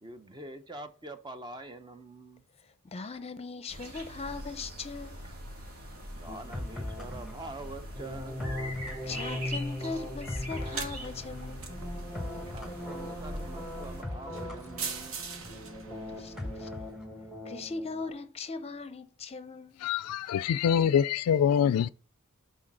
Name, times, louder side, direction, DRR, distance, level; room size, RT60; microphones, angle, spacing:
voice 1, 0.0-2.4 5.2-5.4 6.1-8.4 12.5-15.2, right 2 dB, 20° right, 0.6 m, -45 dB
voice 2, 2.9-5.2 9.0-11.7 16.1-16.3 16.6-16.7 17.5-19.8, left 4 dB, 30° left, 0.7 m, -39 dB
sound 1, 3.7-14.0, equal, 80° right, 1.8 m, -43 dB
sound 2, 6.3-18.1, left 1 dB, 5° right, 1.3 m, -39 dB
sound 3, 10.5-16.9, right 5 dB, 65° right, 1.0 m, -43 dB
voice 3, 19.8-21.9, left 8 dB, 85° left, 0.3 m, -25 dB
6.3 x 4.1 x 5.9 m
head